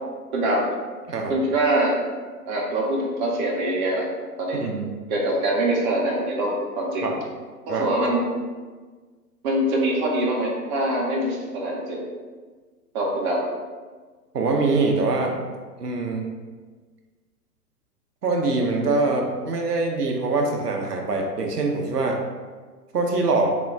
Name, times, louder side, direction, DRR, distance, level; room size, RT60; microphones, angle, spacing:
voice 1, 0.3-0.6 1.3-2.0 2.5-4.1 4.4-4.6 5.1-7.1 7.8-8.3 9.4-12.0 12.9-13.4, right 1 dB, 30° right, -2 dB, 0.7 m, -24 dB
voice 2, 4.5-4.9 7.0-7.2 7.7-7.9 14.3-15.4 15.8-16.3 18.2-22.2 22.9-23.5, right 3 dB, 85° right, 1 dB, 0.7 m, -23 dB
3.6 x 2.1 x 4.3 m, 1.4 s
figure-of-eight pair, 115°, 47 cm